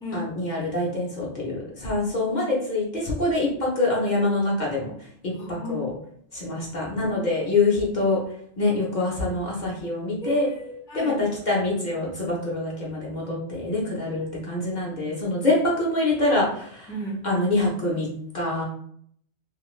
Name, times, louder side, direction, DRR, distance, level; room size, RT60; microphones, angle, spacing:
voice 1, 0.1-4.9 5.2-5.9 6.3-8.2 8.6-10.5 10.9-16.9 17.2-18.1 18.3-18.6, left 2 dB, 45° left, -4 dB, 0.8 m, -25 dB
voice 2, 5.4-5.8 10.2-11.2 16.9-17.2, equal, 5° left, -4 dB, 0.5 m, -33 dB
2.7 x 2.4 x 3.1 m, 0.65 s
omnidirectional pair, 1.2 m